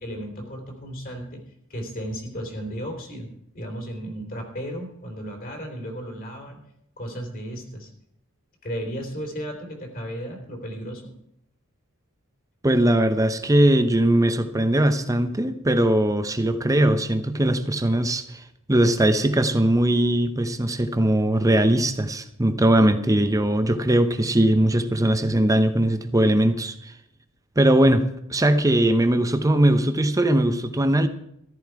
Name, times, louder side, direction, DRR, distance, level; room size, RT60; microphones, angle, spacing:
voice 1, 0.0-1.4 1.7-3.3 3.5-6.6 7.0-7.9 8.6-11.1, equal, 45° left, 2 dB, 3.5 m, -34 dB
voice 2, 12.6-18.4 18.7-26.9 27.6-31.1, right 1 dB, 15° right, 9 dB, 0.7 m, -20 dB
14.0 x 12.5 x 4.7 m, 0.75 s
head